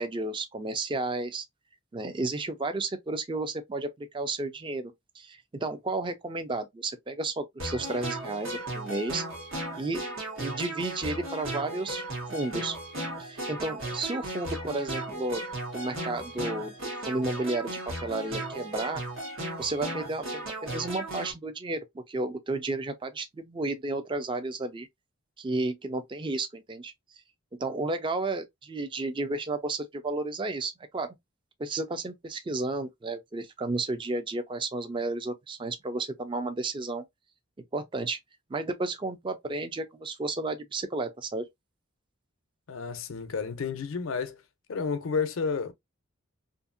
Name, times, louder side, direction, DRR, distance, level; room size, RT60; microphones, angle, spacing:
voice 1, 0.0-1.5 1.9-9.2 9.8-10.0 10.4-12.8 13.2-15.4 15.7-19.0 19.6-24.9 25.4-26.9 27.6-31.2 31.6-37.0 37.7-38.2 38.5-41.5, right 2 dB, 25° right, 0.4 m, -32 dB
sound 1, 7.6-21.3, right 1 dB, 80° right, 1.3 m, -36 dB
voice 2, 42.7-44.4 44.7-45.7, left 5 dB, 85° left, 0.5 m, -31 dB
2.7 x 2.5 x 2.4 m
head